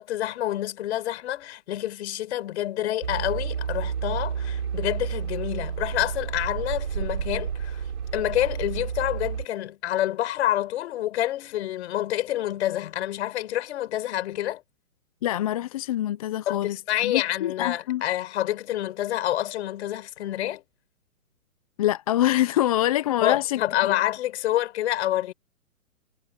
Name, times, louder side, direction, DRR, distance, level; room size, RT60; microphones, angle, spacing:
voice 1, 0.0-7.8 8.1-14.6 16.5-20.6 23.2-25.3, left 13 dB, 50° left, 4.9 m, -28 dB
sound 1, 3.0-9.5, right 7 dB, 80° right, 4.6 m, -30 dB
voice 2, 15.2-16.8 17.0-18.0 21.8-23.9, left 13 dB, 25° left, 0.5 m, -25 dB
hypercardioid pair, 145°, 42 cm